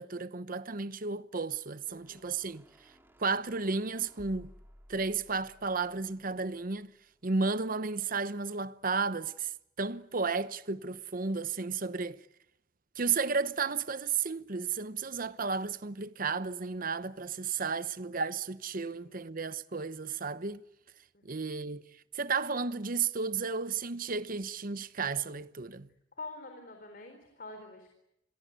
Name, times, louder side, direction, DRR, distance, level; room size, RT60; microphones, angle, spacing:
voice 1, 0.0-2.9 3.2-4.5 4.9-6.9 7.2-9.5 9.8-12.2 12.9-20.6 21.2-21.8 22.1-25.9, right 4 dB, 45° right, 0.9 m, -33 dB
voice 2, 1.9-2.3 19.0-19.2 21.1-21.4 26.2-27.9, left 3 dB, 45° left, 4.2 m, -46 dB
sound 1, 1.9-7.1, equal, 10° right, 2.5 m, -58 dB
28.5 x 22.0 x 8.2 m
head